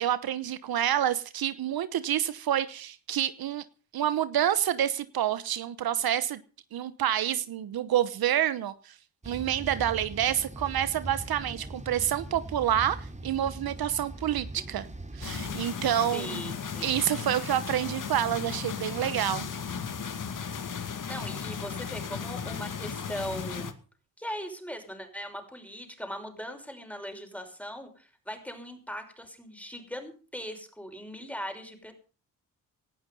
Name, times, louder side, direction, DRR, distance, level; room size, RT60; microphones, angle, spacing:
voice 1, 0.0-3.6 3.9-6.4 6.7-8.9 9.2-14.9 15.1-16.4 16.8-19.5, right 11 dB, 70° right, 1.0 m, -28 dB
sound 1, 9.2-15.6, right 2 dB, 20° right, 3.7 m, -41 dB
sound 2, 15.2-23.7, left 6 dB, 55° left, 2.2 m, -36 dB
voice 2, 16.1-16.9 20.8-23.7 24.2-31.9, equal, 5° left, 5.7 m, -40 dB
18.5 x 12.0 x 5.4 m
cardioid pair, 70°, 38 cm